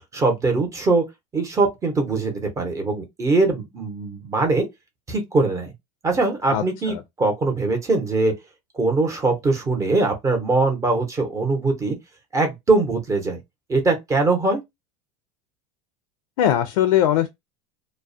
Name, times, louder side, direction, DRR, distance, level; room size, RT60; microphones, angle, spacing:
voice 1, 0.1-1.1 1.3-4.7 5.1-5.7 6.0-8.3 8.7-12.0 12.3-13.4 13.7-14.6, right 3 dB, 15° right, 0.7 m, -22 dB
voice 2, 6.5-7.0 16.4-17.3, left 11 dB, 90° left, 0.4 m, -20 dB
2.3 x 2.1 x 2.5 m
supercardioid pair, 140°, 18 cm